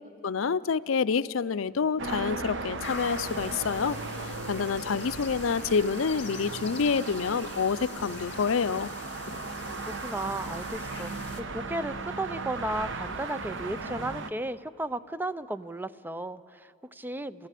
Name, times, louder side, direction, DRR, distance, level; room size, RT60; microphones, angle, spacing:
voice 1, 0.2-4.0 4.5-8.9, left 5 dB, 80° left, 16 dB, 0.5 m, -27 dB
sound 1, 2.0-14.3, right 3 dB, 65° right, 1.1 m, -37 dB
sound 2, 2.8-11.4, left 5 dB, 60° left, 2.5 m, -44 dB
voice 2, 10.0-11.2 11.5-17.5, right 1 dB, 10° right, 14 dB, 0.5 m, -34 dB
29.0 x 15.0 x 8.4 m, 2.6 s
head